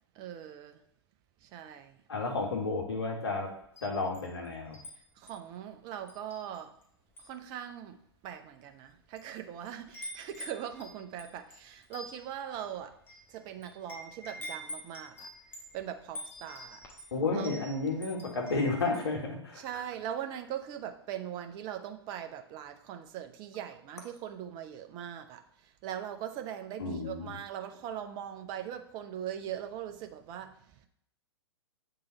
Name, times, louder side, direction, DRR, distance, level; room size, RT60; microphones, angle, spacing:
voice 1, 0.1-0.8 1.4-2.0 5.2-6.7 7.2-8.0 8.2-12.9 13.3-15.3 15.7-16.8 17.3-17.5 19.5-30.9, right 10 dB, 30° right, 7 dB, 0.6 m, -41 dB
voice 2, 2.1-3.5 3.8-4.8 17.1-19.6 26.8-27.3, left 3 dB, 70° left, 1 dB, 1.7 m, -32 dB
Wind chime, 3.6-4.9 5.3-5.5 6.1-6.8 7.1-7.4 8.1-8.2 8.9-9.4 9.6-19.1, equal, 15° left, 1.4 m, -46 dB
7.8 x 3.9 x 4.1 m, 0.70 s
figure-of-eight pair, 105°, 14 cm